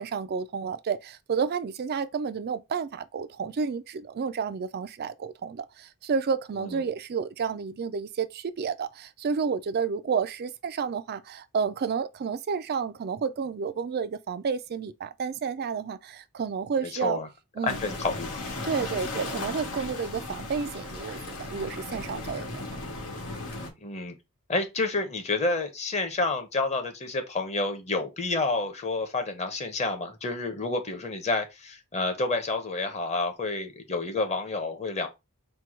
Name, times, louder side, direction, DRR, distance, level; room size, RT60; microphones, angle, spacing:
voice 1, 0.0-17.2 17.6-17.8 18.6-22.7, right 6 dB, 45° right, 0.4 m, -31 dB
voice 2, 17.6-18.3 23.8-24.1 24.5-35.1, left 3 dB, 30° left, 1.0 m, -29 dB
sound 1, 17.7-23.7, left 2 dB, 90° left, 1.7 m, -36 dB
4.5 x 2.3 x 4.4 m
head